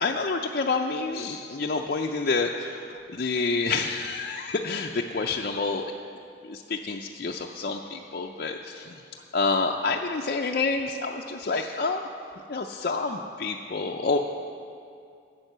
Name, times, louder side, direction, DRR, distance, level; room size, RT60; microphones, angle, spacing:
voice 1, 0.0-5.8 6.5-8.9 9.3-12.1 12.5-14.2, left 4 dB, 55° left, 0 dB, 0.5 m, -28 dB
12.0 x 8.5 x 6.7 m, 2.4 s
head